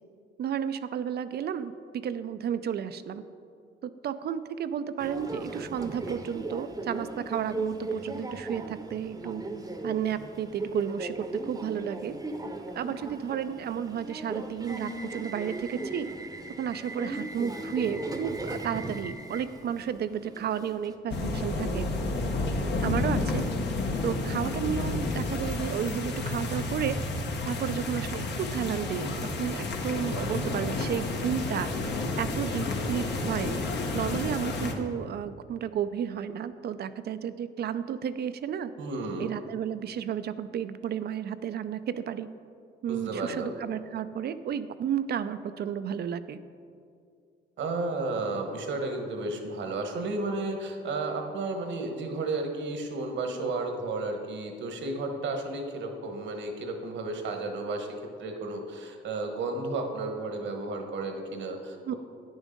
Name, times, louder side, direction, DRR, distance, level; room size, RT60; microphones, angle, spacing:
voice 1, 0.4-3.2 4.0-9.4 9.8-12.1 12.7-16.1 16.6-21.9 22.8-23.5 24.0-27.0 27.4-31.7 32.2-33.5 33.9-38.7 39.2-42.3 42.8-46.4 61.8-61.9, right 8 dB, 55° right, 12 dB, 0.4 m, -32 dB
Subway metro underground, 5.0-20.9, right 2 dB, 20° right, 0.8 m, -37 dB
sound 1, 21.1-34.7, left 2 dB, 60° left, 1.1 m, -31 dB
voice 2, 38.8-39.3 42.9-43.5 47.6-57.9 58.2-61.9, right 2 dB, 70° right, 4 dB, 1.2 m, -33 dB
9.4 x 6.3 x 5.2 m, 2.3 s
cardioid pair, 90°, 20 cm